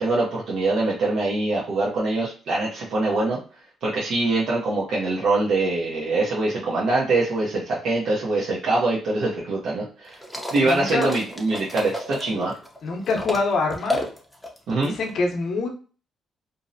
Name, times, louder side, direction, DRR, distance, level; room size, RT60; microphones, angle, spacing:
voice 1, 0.0-3.4 3.8-10.2 10.5-12.5 14.7-14.9, right 2 dB, 65° right, -5 dB, 0.6 m, -23 dB
sound 1, 10.1-13.4 13.7-15.1, left 1 dB, ahead, 0.5 m, -32 dB
voice 2, 10.6-11.1 12.3-12.5 12.8-14.0 14.8-15.7, left 3 dB, 65° left, 2 dB, 0.6 m, -25 dB
2.6 x 2.0 x 2.5 m, 0.38 s
cardioid pair, 90°, 0 cm